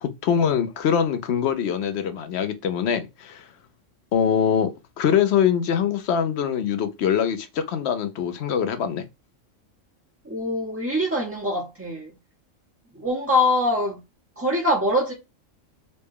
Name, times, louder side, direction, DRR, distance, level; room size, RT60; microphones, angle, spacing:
voice 1, 0.0-3.5 4.1-4.7 5.0-9.0, left 8 dB, 60° left, 0.8 m, -23 dB
voice 2, 10.2-12.1 12.9-14.0 14.4-15.1, left 1 dB, 15° right, 0.5 m, -23 dB
4.0 x 2.2 x 3.4 m
omnidirectional pair, 1.4 m